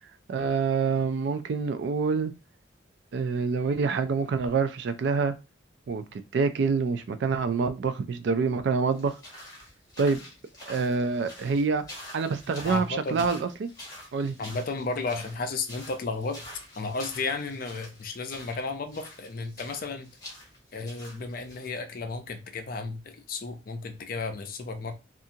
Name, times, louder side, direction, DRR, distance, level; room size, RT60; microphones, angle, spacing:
voice 1, 0.3-2.3 3.1-5.3 5.9-6.0 6.3-9.1 10.0-10.2 10.7-11.8 12.1-13.7 14.1-14.4, right 4 dB, 60° right, 0.3 m, -26 dB
sound 1, 8.9-21.7, left 1 dB, 20° left, 1.0 m, -47 dB
voice 2, 12.6-13.3 14.4-16.4 16.8-20.1 20.7-24.9, left 3 dB, 45° left, 0.4 m, -33 dB
2.6 x 2.4 x 2.7 m
head